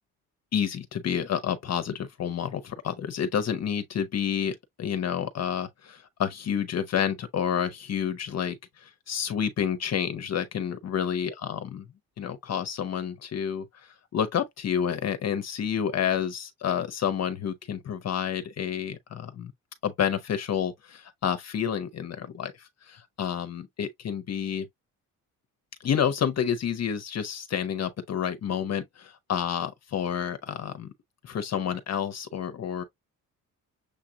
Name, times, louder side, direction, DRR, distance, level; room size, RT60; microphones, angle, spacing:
voice 1, 0.5-11.9 12.2-19.5 19.8-24.7 25.8-30.9 31.2-32.8, left 8 dB, 50° left, 0.8 m, -29 dB
6.7 x 2.4 x 2.8 m
cardioid pair, 90°, 34 cm